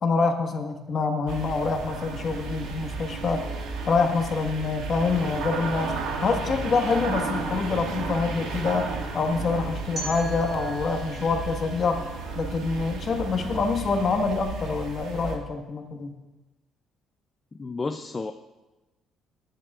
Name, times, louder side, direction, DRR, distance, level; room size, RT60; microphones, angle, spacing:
voice 1, 0.0-3.5 3.9-12.0 12.3-16.1, left 4 dB, 40° left, 3 dB, 1.4 m, -26 dB
sound 1, 1.3-15.4, right 4 dB, 90° right, 1.8 m, -33 dB
sound 2, 10.0-12.9, right 1 dB, 30° right, 2.2 m, -40 dB
voice 2, 17.5-18.3, left 3 dB, 20° left, 6 dB, 0.4 m, -31 dB
19.5 x 10.5 x 2.4 m, 1.1 s
cardioid pair, 145°, 0 cm